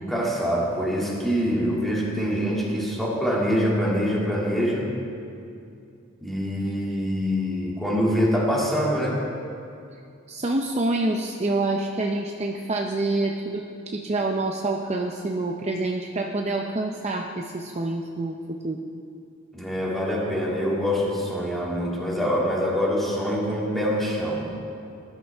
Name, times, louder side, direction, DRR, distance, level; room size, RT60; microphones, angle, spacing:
voice 1, 0.0-4.9 6.2-9.2 19.5-24.5, equal, ahead, -5 dB, 2.4 m, -25 dB
voice 2, 10.3-18.8, right 2 dB, 30° right, 1 dB, 0.6 m, -27 dB
19.5 x 12.0 x 3.5 m, 2.5 s
head